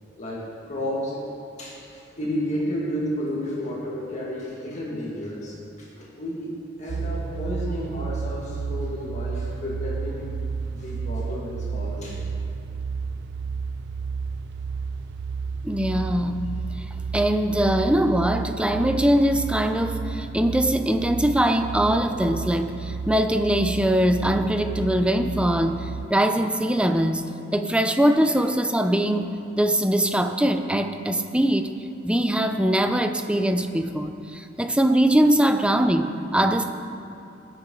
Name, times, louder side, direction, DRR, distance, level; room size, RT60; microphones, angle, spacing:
voice 1, 0.2-1.3 1.6-10.3 10.7-12.3, equal, 40° left, -4 dB, 2.2 m, -32 dB
sound 1, 6.9-26.1, right 5 dB, 60° right, 0.3 m, -32 dB
voice 2, 15.6-16.6 17.1-27.3 27.5-29.3 29.5-31.7 32.0-36.6, right 1 dB, 5° right, 7 dB, 0.6 m, -22 dB
20.5 x 8.2 x 3.9 m, 2.7 s
head